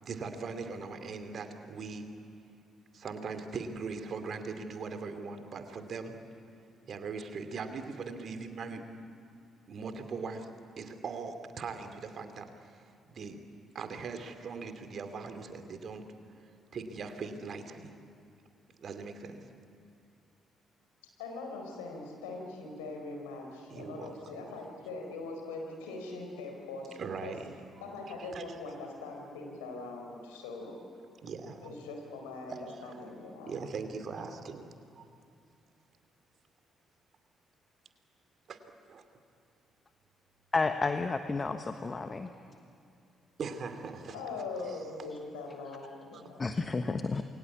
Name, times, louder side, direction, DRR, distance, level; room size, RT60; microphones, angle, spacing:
voice 1, 0.0-2.1 2.9-6.1 6.9-8.8 9.7-10.5 10.8-12.8 13.1-13.4 13.7-16.0 16.7-17.9 18.8-19.4 23.7-24.5 27.0-28.5 31.2-31.7 32.5-32.9 33.5-35.1 38.5-38.6 38.9-39.0 43.4-44.2 44.7-44.8 46.1-46.2, right 4 dB, 50° right, 7 dB, 2.6 m, -40 dB
voice 2, 21.2-27.3 27.8-30.8 31.6-33.5 34.0-34.1 44.1-46.4, left 3 dB, 75° left, 2 dB, 4.6 m, -42 dB
voice 3, 40.5-42.3 46.4-47.2, left 4 dB, 30° left, 8 dB, 1.3 m, -31 dB
28.5 x 23.0 x 8.5 m, 2.5 s
figure-of-eight pair, 45°, 0 cm